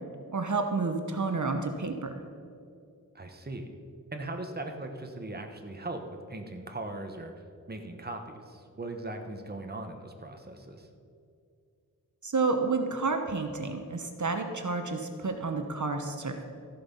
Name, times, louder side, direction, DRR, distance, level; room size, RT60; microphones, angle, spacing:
voice 1, 0.3-2.1 12.2-16.4, right 3 dB, 60° right, 5 dB, 1.1 m, -30 dB
voice 2, 3.1-3.8 4.1-7.3 7.7-10.9, right 2 dB, 30° right, 4 dB, 1.2 m, -39 dB
14.5 x 11.0 x 5.5 m, 2.4 s
wide cardioid pair, 90°, 34 cm